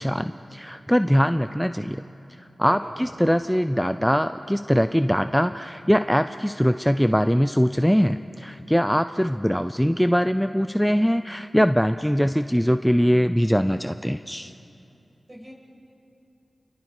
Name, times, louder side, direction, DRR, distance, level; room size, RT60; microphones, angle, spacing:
voice 1, 0.0-2.0 2.6-14.5, equal, ahead, 10 dB, 0.6 m, -22 dB
voice 2, 2.6-3.1 15.3-15.5, right 1 dB, 30° right, -1 dB, 5.9 m, -39 dB
29.0 x 22.5 x 4.9 m, 2.8 s
cardioid pair, 45°, 0 cm